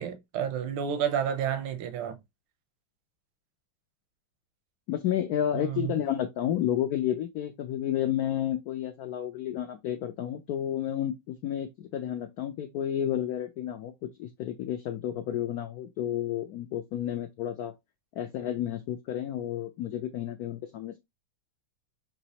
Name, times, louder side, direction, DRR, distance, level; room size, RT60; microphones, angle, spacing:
voice 1, 0.0-2.2 5.5-5.9, right 8 dB, 85° right, 1.6 m, -30 dB
voice 2, 4.9-13.9 14.2-17.7 18.2-21.0, left 11 dB, 80° left, 0.8 m, -31 dB
6.1 x 3.0 x 2.8 m
omnidirectional pair, 2.2 m